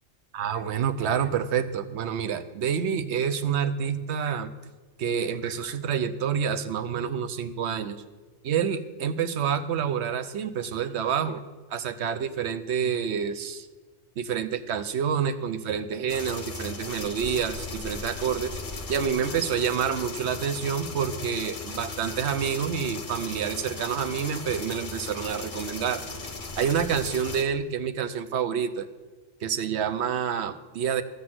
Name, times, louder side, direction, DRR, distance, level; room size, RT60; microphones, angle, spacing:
voice 1, 0.3-4.5 5.0-8.0 8.4-11.4 11.7-13.7 14.2-18.6 18.9-26.0 26.6-28.9 29.4-31.0, right 7 dB, 65° right, 10 dB, 0.9 m, -28 dB
sound 1, 16.1-27.4, left 3 dB, 40° left, 1.2 m, -37 dB
13.0 x 5.9 x 7.8 m, 1.3 s
omnidirectional pair, 1.3 m